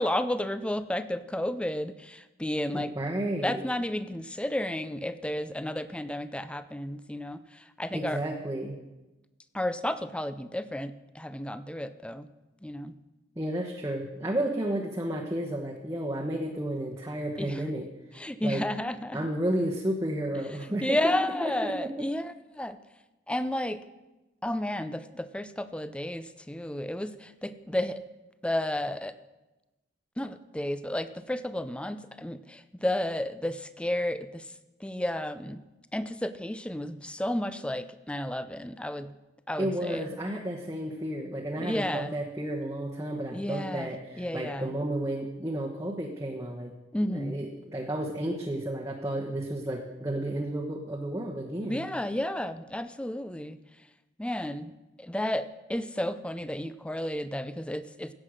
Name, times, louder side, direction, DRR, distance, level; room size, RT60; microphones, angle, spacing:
voice 1, 0.0-2.9 3.4-8.2 9.5-12.3 12.6-12.9 17.4-17.6 18.1-19.2 20.6-22.8 23.3-23.8 24.4-28.0 28.4-29.1 30.2-34.5 34.8-35.6 35.9-39.1 39.5-40.1 41.6-42.1 43.3-44.7 46.9-47.4 51.6-53.6 54.2-54.7 55.0-58.1, left 1 dB, 5° left, 13 dB, 0.5 m, -32 dB
voice 2, 2.7-3.6 7.9-8.8 13.4-17.9 18.4-18.6 19.1-21.1 21.4-21.9 39.6-46.7 47.1-51.8, right 1 dB, 15° right, -2 dB, 1.1 m, -32 dB
16.0 x 7.6 x 6.3 m, 1.1 s
head